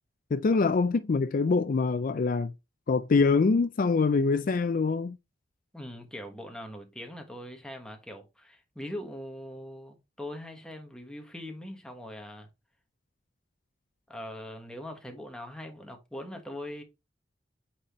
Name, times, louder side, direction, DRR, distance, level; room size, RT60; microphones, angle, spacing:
voice 1, 0.3-2.5 2.9-5.2, left 4 dB, 50° left, 0.4 m, -24 dB
voice 2, 5.7-12.5 14.1-16.8, left 1 dB, 5° left, 1.4 m, -41 dB
8.7 x 4.2 x 3.0 m
head